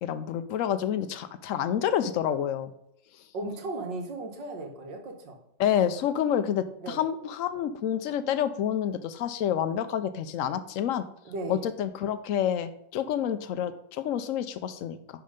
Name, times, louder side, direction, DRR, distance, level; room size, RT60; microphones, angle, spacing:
voice 1, 0.0-2.7 5.6-11.0 11.5-15.0, left 9 dB, 80° left, 11 dB, 0.7 m, -28 dB
voice 2, 3.3-5.4 6.8-7.0 11.3-11.6, right 2 dB, 75° right, 2 dB, 2.2 m, -36 dB
11.0 x 4.4 x 5.1 m, 0.77 s
omnidirectional pair, 2.0 m